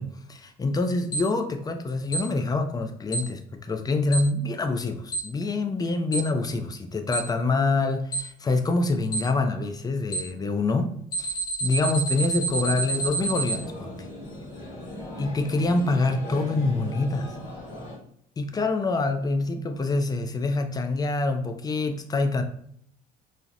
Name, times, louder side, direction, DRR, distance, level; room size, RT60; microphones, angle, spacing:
voice 1, 0.0-10.9 11.2-11.3 11.6-13.9 15.2-17.3 18.4-22.4, left 3 dB, 20° left, 6 dB, 0.3 m, -26 dB
Alarm, 1.1-1.2 2.1-2.2 3.1-3.2 4.1-4.2 5.1-5.2 6.1-6.2 7.1-7.2 8.1-8.2 9.1-9.2 10.1-10.2 11.1-13.5, right 4 dB, 50° left, 0.9 m, -27 dB
sound 1, 12.4-18.0, left 1 dB, 85° left, 1.1 m, -38 dB
2.7 x 2.1 x 2.4 m, 0.66 s
supercardioid pair, 80°, 19 cm